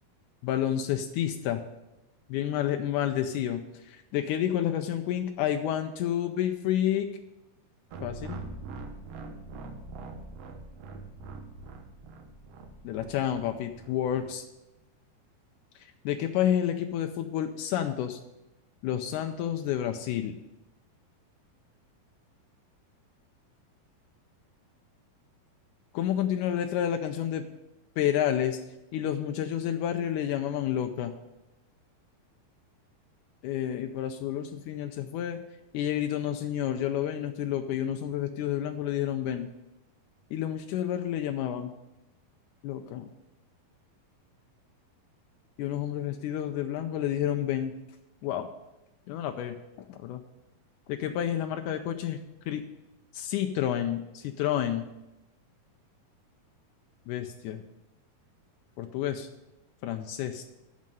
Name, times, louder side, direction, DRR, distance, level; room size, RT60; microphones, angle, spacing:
voice 1, 0.4-1.6 2.3-7.1 8.0-8.4 12.8-14.4 16.0-18.2 18.8-20.4 25.9-27.5 28.0-28.6 28.9-31.1 33.4-35.4 35.7-39.5 40.3-41.7 42.6-43.1 45.6-47.7 48.2-48.5 49.1-49.5 49.9-50.2 50.9-52.2 52.5-52.6 53.1-54.9 57.1-57.6 58.8-59.3 59.8-60.4, left 10 dB, 85° left, 6 dB, 1.7 m, -29 dB
sound 1, 7.9-14.3, right 3 dB, 80° right, 1.4 m, -43 dB
9.3 x 6.4 x 7.6 m, 0.95 s
omnidirectional pair, 4.3 m